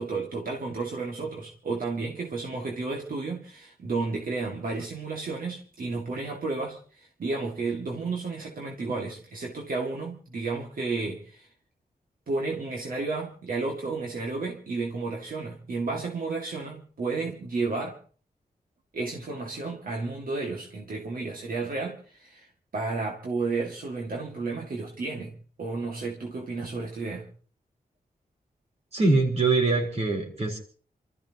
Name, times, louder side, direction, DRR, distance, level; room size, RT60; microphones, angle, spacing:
voice 1, 0.0-11.5 12.3-18.0 18.9-27.3, right 3 dB, 65° right, 0 dB, 2.2 m, -32 dB
voice 2, 28.9-30.6, right 3 dB, 45° right, 1 dB, 4.0 m, -23 dB
28.5 x 13.5 x 3.0 m, 0.43 s
wide cardioid pair, 155°, 15 cm